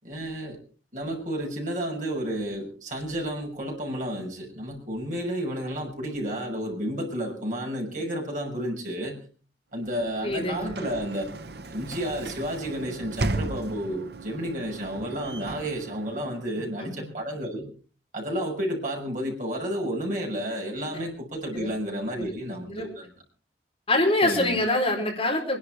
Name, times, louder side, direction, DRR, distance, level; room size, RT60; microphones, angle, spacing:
voice 1, 0.0-0.6 0.9-9.2 9.7-11.2 11.7-17.7 18.1-23.1 24.2-24.6, equal, 45° right, -1 dB, 6.2 m, -31 dB
Sliding door / Slam, 9.8-16.8, right 2 dB, 60° right, 0.9 m, -36 dB
voice 2, 10.2-10.8 16.8-17.1 21.5-21.7 22.2-22.4 22.7-22.9 23.9-25.6, left 1 dB, 30° left, 1 dB, 4.3 m, -25 dB
25.0 x 11.5 x 4.5 m, 0.39 s
head